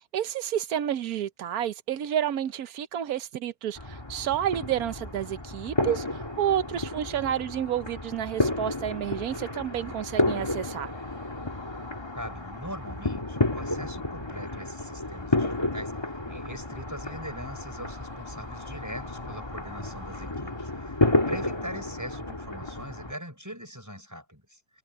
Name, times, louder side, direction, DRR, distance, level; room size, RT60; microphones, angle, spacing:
voice 1, 0.1-10.9, right 10 dB, 75° right, 1.2 m, -30 dB
sound 1, 3.8-23.1, left 2 dB, 15° left, 1.8 m, -31 dB
voice 2, 12.1-24.8, equal, 10° right, 6.1 m, -42 dB
omnidirectional pair, 1.6 m